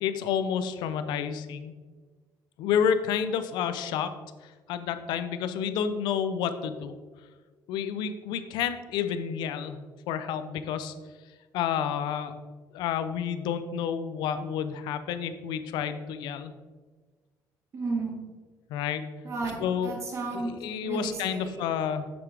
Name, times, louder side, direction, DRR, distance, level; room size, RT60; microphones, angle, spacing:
voice 1, 0.0-1.7 2.6-4.1 4.4-6.9 7.7-9.8 10.1-10.9 11.5-12.3 12.7-16.5 18.7-19.1 19.6-19.9 20.3-22.1, left 8 dB, 90° left, 10 dB, 0.5 m, -30 dB
voice 2, 17.7-18.2 19.2-20.5 20.8-21.7, right 3 dB, 40° right, 1 dB, 1.6 m, -33 dB
7.0 x 6.7 x 3.4 m, 1.4 s
cardioid pair, 125°, 7 cm